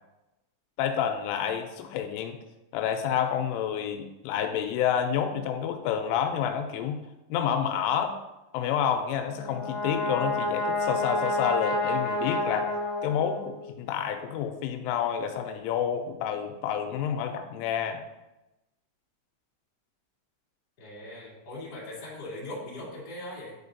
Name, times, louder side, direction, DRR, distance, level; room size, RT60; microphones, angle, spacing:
voice 1, 0.8-2.4 2.7-7.0 7.3-8.2 8.5-12.7 13.0-18.0, left 8 dB, 85° left, 6 dB, 3.0 m, -29 dB
Brass instrument, 9.3-13.7, left 2 dB, 65° left, 1.7 m, -29 dB
voice 2, 20.8-23.5, left 1 dB, 30° left, -7 dB, 1.8 m, -40 dB
10.0 x 5.0 x 2.7 m, 0.98 s
omnidirectional pair, 5.6 m